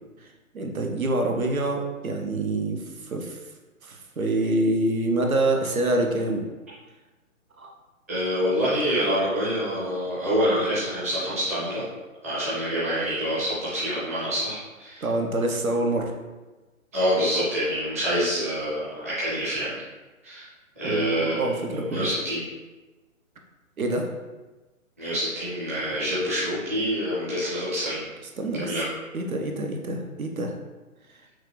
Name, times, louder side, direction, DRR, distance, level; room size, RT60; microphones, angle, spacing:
voice 1, 0.5-3.4 3.8-6.5 7.6-7.7 15.0-16.1 20.8-22.1 23.8-24.1 28.4-28.7 29.1-30.5, right 2 dB, 80° right, 3 dB, 0.9 m, -26 dB
voice 2, 8.1-11.8 12.2-15.1 16.9-19.8 20.2-20.5 20.8-22.4 25.0-28.1 28.5-28.9, equal, 10° right, -10 dB, 0.5 m, -26 dB
5.7 x 2.4 x 3.1 m, 1.2 s
figure-of-eight pair, 140°, 42 cm